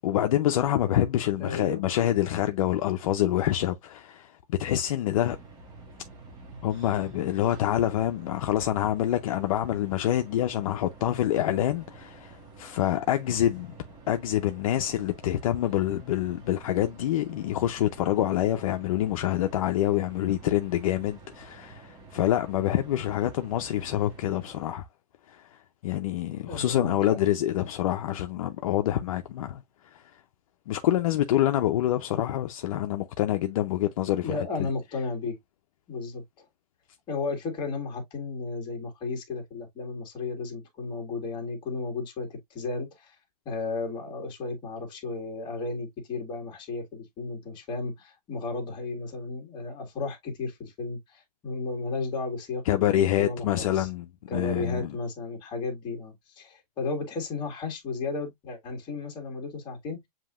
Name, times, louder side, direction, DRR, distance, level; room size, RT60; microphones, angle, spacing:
voice 1, 0.0-5.4 6.6-13.7 14.1-24.9 25.3-29.6 29.9-30.0 30.7-34.5 52.7-54.1 54.3-54.9, left 12 dB, 55° left, 0.6 m, -26 dB
voice 2, 1.4-1.8 26.5-27.2 34.2-35.4 35.9-36.4 37.1-43.1 43.4-53.9 54.3-60.0, left 3 dB, 20° left, 1.7 m, -34 dB
sound 1, 5.2-24.7, right 3 dB, 20° right, 1.1 m, -49 dB
7.4 x 2.8 x 2.4 m
supercardioid pair, 165°, 21 cm